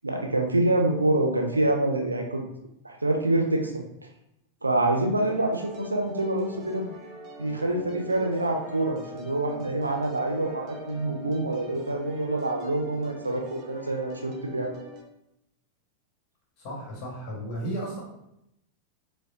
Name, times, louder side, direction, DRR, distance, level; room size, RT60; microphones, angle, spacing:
voice 1, 0.0-2.4 2.8-3.8 4.6-6.9 7.4-14.7, right 2 dB, 80° right, 2 dB, 0.5 m, -26 dB
sound 1, 5.2-15.0, right 1 dB, 35° right, 0.7 m, -44 dB
voice 2, 16.6-18.0, right 1 dB, 40° left, -4 dB, 1.4 m, -34 dB
4.7 x 2.2 x 2.6 m, 0.82 s
figure-of-eight pair, 90°, 0 cm